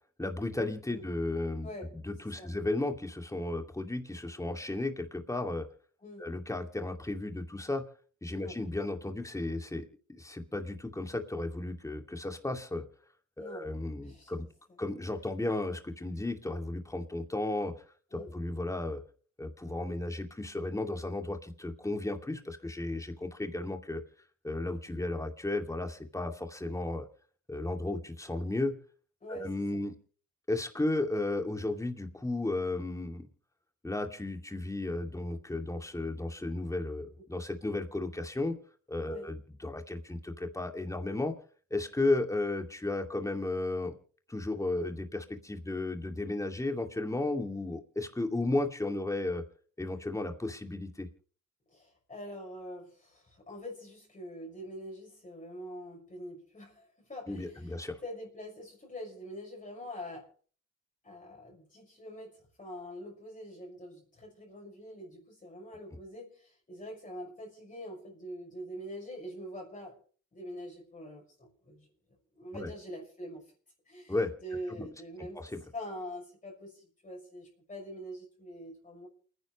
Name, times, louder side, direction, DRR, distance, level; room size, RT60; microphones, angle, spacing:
voice 1, 0.2-1.7 1.9-5.7 6.2-7.9 8.2-12.8 13.4-14.4 14.8-17.7 18.1-19.0 19.4-24.0 24.4-27.1 27.5-28.8 29.3-30.0 30.5-33.3 33.8-38.6 38.9-41.3 41.7-43.9 44.3-49.4 49.8-51.1 57.3-58.0 72.5-72.7 74.1-74.3 75.3-75.6, left 2 dB, 10° left, 4 dB, 2.5 m, -34 dB
voice 2, 13.4-13.7 14.0-14.3 18.1-18.3 29.2-29.8 39.0-39.3 51.7-57.8 58.0-60.3 61.0-70.0 70.3-71.9 72.3-73.4 73.9-75.4 75.7-79.1, equal, 25° left, -2 dB, 6.1 m, -44 dB
28.5 x 10.5 x 3.3 m, 0.42 s
cardioid pair, 90°, 30 cm